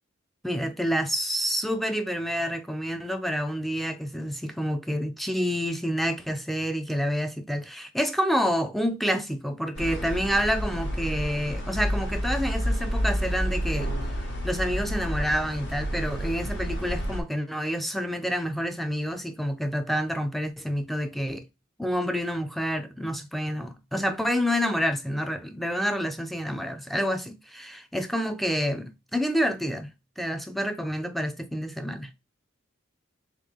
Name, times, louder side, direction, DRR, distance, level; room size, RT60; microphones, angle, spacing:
voice 1, 0.4-13.9 14.4-21.4 21.8-32.1, equal, ahead, 0.4 m, -28 dB
sound 1, 9.7-17.2, equal, 70° left, 1.4 m, -29 dB
3.7 x 3.6 x 3.4 m
head